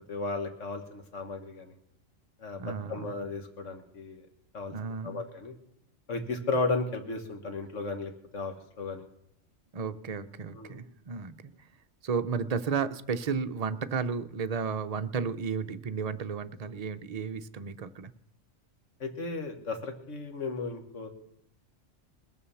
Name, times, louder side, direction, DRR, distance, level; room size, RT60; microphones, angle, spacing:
voice 1, 0.1-1.8 2.4-4.3 4.5-4.7 5.0-5.6 6.1-9.1 10.5-10.8 19.0-21.1, left 3 dB, 80° left, 6 dB, 1.9 m, -34 dB
voice 2, 2.6-3.1 4.7-5.2 9.7-11.7 12.0-18.1, right 6 dB, 45° right, 9 dB, 0.6 m, -33 dB
20.0 x 7.2 x 7.0 m, 0.78 s
omnidirectional pair, 1.3 m